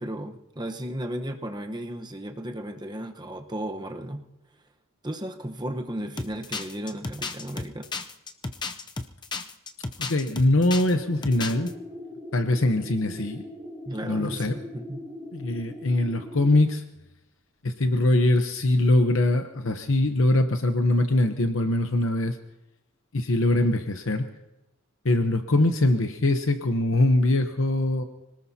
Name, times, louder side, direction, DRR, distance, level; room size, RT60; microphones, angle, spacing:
voice 1, 0.0-4.2 5.0-7.9 13.9-15.0, right 1 dB, 20° right, 4 dB, 1.0 m, -34 dB
sound 1, 6.2-10.9 11.2-11.7, left 3 dB, 20° left, 0.6 m, -33 dB
voice 2, 10.0-11.7 12.3-13.4 14.0-14.5 15.3-16.8 17.6-22.4 23.1-24.2 25.0-28.0, left 2 dB, 60° left, 6 dB, 0.9 m, -22 dB
sound 2, 10.9-16.6, left 1 dB, ahead, 2.9 m, -41 dB
26.0 x 19.0 x 2.8 m, 0.97 s
head